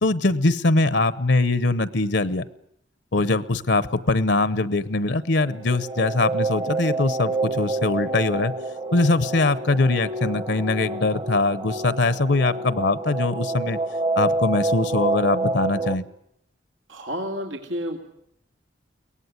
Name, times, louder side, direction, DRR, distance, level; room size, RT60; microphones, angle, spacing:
voice 1, 0.0-2.4 3.1-8.5 8.9-13.8 14.2-16.0, left 2 dB, 60° left, 16 dB, 0.9 m, -22 dB
sound 1, 5.3-16.0, right 2 dB, 30° right, 1.1 m, -28 dB
voice 2, 16.9-18.0, equal, 90° right, 2 dB, 2.7 m, -30 dB
23.0 x 18.5 x 9.6 m, 0.76 s
head